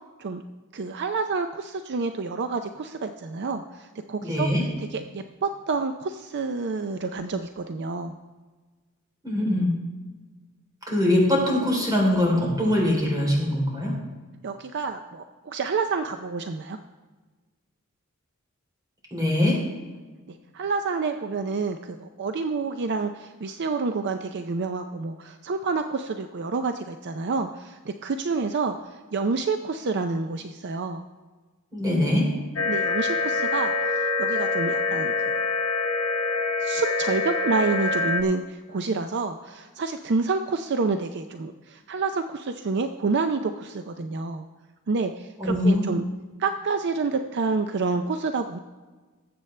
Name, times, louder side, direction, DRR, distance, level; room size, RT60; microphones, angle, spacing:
voice 1, 0.7-8.2 14.4-16.8 20.3-31.0 32.7-35.4 36.6-44.5 44.9-46.0 46.4-48.6, right 4 dB, 55° right, 7 dB, 0.5 m, -28 dB
voice 2, 4.2-4.6 9.2-9.7 10.9-13.9 19.1-19.6 31.7-32.3 45.4-45.8, left 1 dB, 20° right, -2 dB, 3.4 m, -22 dB
sound 1, 32.6-38.2, left 3 dB, 70° left, 1.0 m, -25 dB
19.0 x 7.9 x 3.3 m, 1.3 s
head